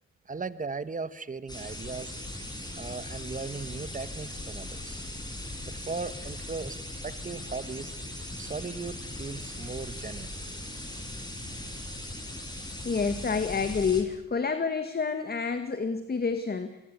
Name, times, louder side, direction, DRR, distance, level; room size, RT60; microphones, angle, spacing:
voice 1, 0.3-2.2 2.7-5.0 5.6-6.8 7.0-8.0 8.4-10.4, right 4 dB, 25° right, 14 dB, 1.5 m, -37 dB
sound 1, 1.5-14.0, left 1 dB, 15° left, 7.0 m, -39 dB
voice 2, 12.8-16.8, left 5 dB, 30° left, 9 dB, 2.0 m, -28 dB
25.5 x 22.0 x 8.3 m, 0.87 s
cardioid pair, 90°, 30 cm